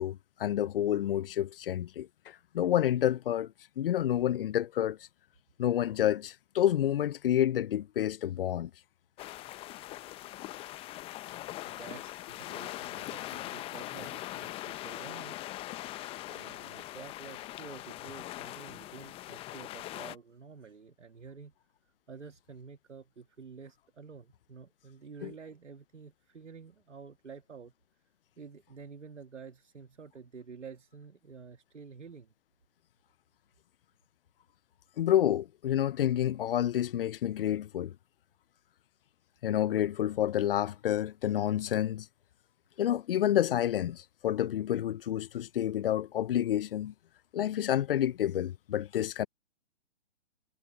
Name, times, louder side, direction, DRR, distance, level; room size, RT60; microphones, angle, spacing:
voice 1, 0.0-5.0 5.6-8.7 25.2-25.3 35.0-37.9 39.4-42.1 42.8-46.9 47.3-49.3, left 11 dB, 50° left, 0.8 m, -29 dB
sound 1, 9.2-20.2, left 16 dB, 15° left, 0.9 m, -41 dB
voice 2, 11.7-15.5 16.3-21.5 22.1-27.7 28.4-32.3, right 5 dB, 80° right, 2.3 m, -49 dB
hypercardioid pair, 135°, 36 cm